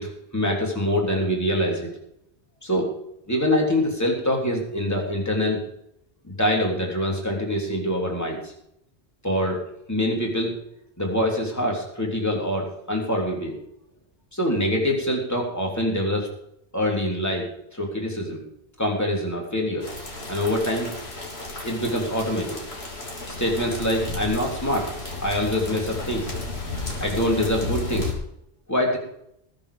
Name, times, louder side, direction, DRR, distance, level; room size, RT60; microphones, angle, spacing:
voice 1, 0.0-1.9 2.6-2.9 3.3-5.6 6.3-8.5 9.2-9.6 9.9-10.5 11.0-13.6 14.3-16.3 16.7-18.4 18.8-19.9 20.3-20.9 21.6-22.6 23.3-24.9 25.2-26.3 27.0-28.1 28.7-29.0, left 1 dB, 15° left, -1 dB, 3.4 m, -25 dB
sound 1, 19.8-28.1, left 3 dB, 70° left, 3.9 m, -33 dB
20.0 x 7.7 x 5.1 m, 0.75 s
omnidirectional pair, 1.1 m